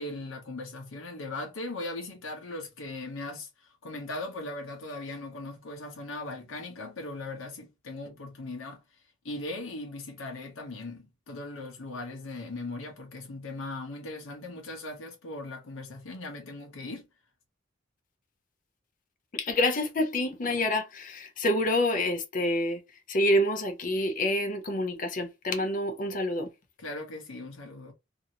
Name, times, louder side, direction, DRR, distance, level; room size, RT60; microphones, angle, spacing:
voice 1, 0.0-8.8 9.2-17.1 26.8-27.9, left 2 dB, 85° left, 0.8 m, -39 dB
voice 2, 19.3-22.8 23.1-26.5, left 1 dB, 40° left, 0.6 m, -27 dB
2.7 x 2.5 x 2.8 m
head